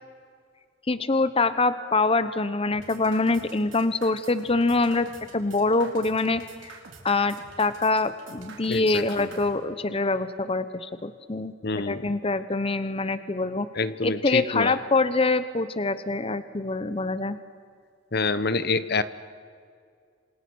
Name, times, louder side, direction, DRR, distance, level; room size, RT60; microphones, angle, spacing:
voice 1, 0.9-5.1 5.3-6.7 7.0-11.5 11.8-13.7 14.0-17.4, left 3 dB, 30° left, 12 dB, 0.9 m, -25 dB
sound 1, 2.7-9.5, right 4 dB, 80° right, 4.4 m, -46 dB
voice 2, 8.7-9.3 11.6-12.0 13.7-14.8 18.1-19.0, left 3 dB, 55° left, 14 dB, 1.0 m, -27 dB
28.0 x 27.5 x 6.3 m, 2.2 s
head